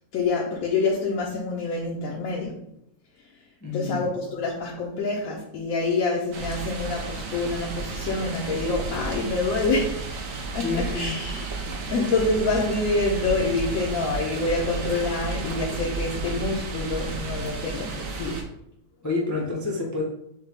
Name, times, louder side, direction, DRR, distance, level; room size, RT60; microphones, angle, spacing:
voice 1, 0.1-2.6 3.7-18.4, left 3 dB, 70° left, -3 dB, 1.1 m, -27 dB
voice 2, 3.6-4.1 10.6-11.1 19.0-20.0, left 3 dB, 20° left, -3 dB, 0.5 m, -28 dB
sound 1, 6.3-18.4, right 3 dB, 65° right, 1.0 m, -32 dB
6.5 x 2.2 x 3.5 m, 0.77 s
omnidirectional pair, 1.5 m